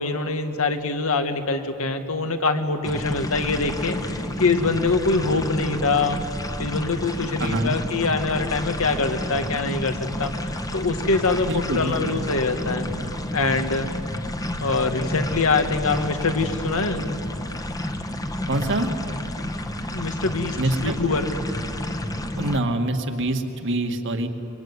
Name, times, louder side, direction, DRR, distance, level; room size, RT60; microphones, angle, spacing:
voice 1, 0.0-6.2 6.6-10.3 10.7-13.0 13.3-13.9 14.6-17.1 19.9-21.3, left 3 dB, 70° left, 7 dB, 1.9 m, -24 dB
sound 1, 2.8-22.6, left 1 dB, 15° left, 1.4 m, -30 dB
voice 2, 7.4-7.8 11.5-12.3 18.5-18.9 20.6-21.0 22.4-24.3, right 1 dB, 60° right, 5 dB, 2.1 m, -25 dB
25.0 x 24.5 x 9.7 m, 2.9 s
head